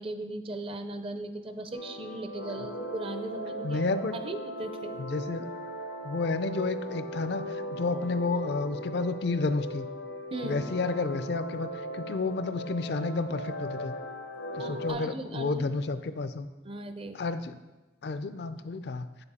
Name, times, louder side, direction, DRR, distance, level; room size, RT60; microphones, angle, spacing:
voice 1, 0.0-3.8 4.2-4.9 10.3-10.6 14.6-15.8 16.6-17.2, right 2 dB, 30° right, 8 dB, 0.5 m, -38 dB
sound 1, 1.7-14.9, equal, 90° left, 0.9 m, -38 dB
voice 2, 3.6-4.1 5.0-5.5 6.0-9.9 10.4-11.7 11.9-13.9 14.5-16.5 17.1-17.6 18.0-19.1, left 3 dB, 60° left, 11 dB, 0.4 m, -31 dB
8.2 x 6.9 x 4.2 m, 1.1 s
head